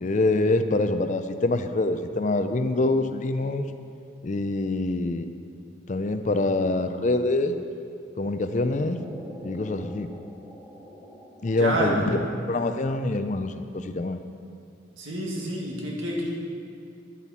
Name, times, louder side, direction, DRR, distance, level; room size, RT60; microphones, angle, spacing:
voice 1, 0.0-3.7 4.2-5.3 5.9-7.6 8.2-9.0 9.4-10.1 11.4-12.2 12.5-14.2, left 2 dB, 40° left, 9 dB, 0.4 m, -25 dB
sound 1, 8.9-12.9, equal, 10° right, 1.9 m, -45 dB
voice 2, 11.5-12.3 15.0-16.4, right 1 dB, 85° right, -2 dB, 2.0 m, -28 dB
11.5 x 9.8 x 4.2 m, 2.4 s
head